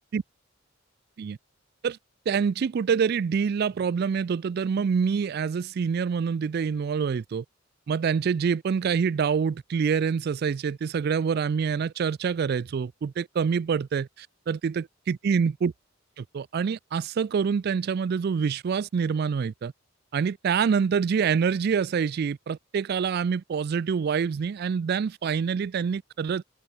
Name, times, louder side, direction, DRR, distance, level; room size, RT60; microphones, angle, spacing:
voice 1, 2.3-7.4 7.9-15.7 16.2-19.7 20.1-26.4, right 6 dB, 55° right, 0.3 m, -26 dB
open air
head